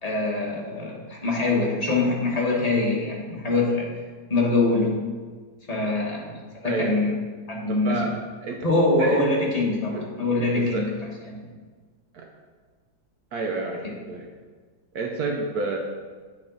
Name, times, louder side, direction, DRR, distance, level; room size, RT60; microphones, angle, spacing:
voice 1, 0.0-3.9 4.3-5.0 5.7-6.4 6.6-7.1 7.5-8.0 8.6-10.9 11.3-11.5 13.8-13.9, left 2 dB, 25° left, -3 dB, 1.1 m, -24 dB
voice 2, 6.6-7.0 7.7-8.6 9.0-9.2 9.9-10.1 10.5-10.9 12.1-12.3 13.3-13.8 14.1-14.3 14.9-15.8, right 3 dB, 65° right, 1 dB, 1.1 m, -29 dB
8.5 x 5.0 x 3.9 m, 1.5 s
omnidirectional pair, 2.1 m